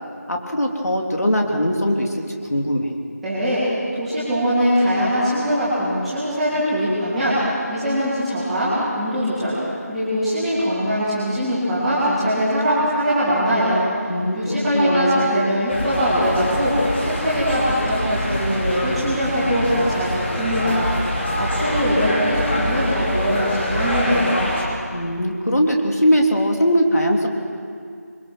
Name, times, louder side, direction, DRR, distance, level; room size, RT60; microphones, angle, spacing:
voice 1, 0.3-2.1 2.5-2.9 14.1-15.3 24.9-27.3, equal, 70° left, 1 dB, 3.3 m, -20 dB
voice 2, 3.2-3.7 4.0-9.5 9.9-24.4, equal, ahead, -16 dB, 3.2 m, -22 dB
sound 1, 15.7-24.6, left 1 dB, 45° left, 5.1 m, -24 dB
28.5 x 22.5 x 6.3 m, 2.2 s
figure-of-eight pair, 170°, 9 cm